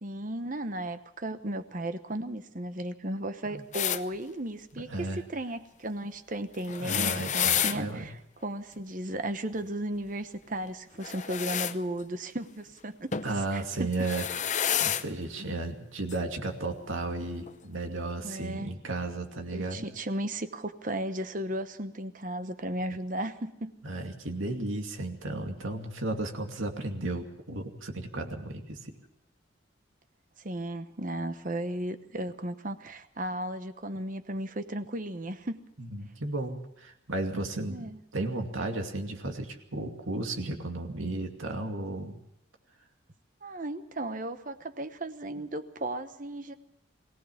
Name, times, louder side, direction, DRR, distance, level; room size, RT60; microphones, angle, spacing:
voice 1, 0.0-13.9 15.4-15.6 18.2-18.7 19.5-23.7 30.4-35.6 37.7-38.0 43.4-46.5, right 1 dB, 40° right, 10 dB, 1.0 m, -35 dB
sound 1, 3.7-4.0 6.6-7.8 11.0-11.7 13.1-13.3 13.9-15.0 16.1-16.2 17.4-17.5, left 9 dB, 35° left, 0.7 m, -29 dB
voice 2, 6.8-8.1 13.2-14.3 14.5-19.9 23.8-28.9 35.8-37.9 38.1-42.2, right 2 dB, 85° right, 3 dB, 2.5 m, -34 dB
22.5 x 17.0 x 7.2 m, 0.79 s
head